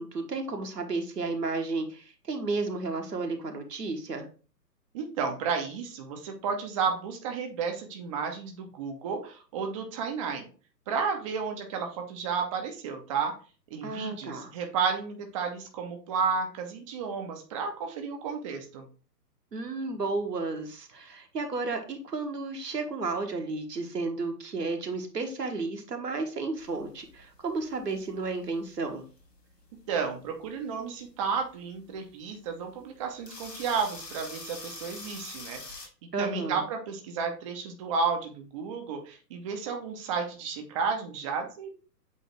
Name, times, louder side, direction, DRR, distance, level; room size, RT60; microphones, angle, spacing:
voice 1, 0.0-4.3 13.8-14.5 19.5-29.1 36.1-36.6, right 3 dB, 75° right, 4 dB, 1.5 m, -32 dB
voice 2, 4.9-10.5 10.9-13.3 13.7-18.8 29.9-35.9 36.2-41.7, right 5 dB, 20° right, 3 dB, 0.7 m, -32 dB
sound 1, 26.6-35.9, left 2 dB, 75° left, 2.0 m, -46 dB
8.2 x 2.8 x 4.5 m, 0.37 s
figure-of-eight pair, 120°, 49 cm